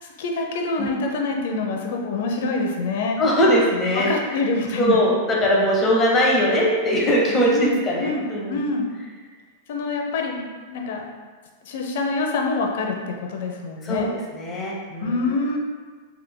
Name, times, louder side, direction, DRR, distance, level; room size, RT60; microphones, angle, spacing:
voice 1, 0.0-3.2 4.0-5.1 7.5-8.2 8.5-8.9 9.7-11.1 11.6-14.1 15.0-15.6, left 3 dB, 65° left, 1 dB, 0.6 m, -26 dB
voice 2, 3.2-4.1 4.8-8.7 13.8-15.3, equal, 25° left, -3 dB, 0.7 m, -21 dB
3.8 x 3.3 x 2.2 m, 1.5 s
hypercardioid pair, 125°, 0 cm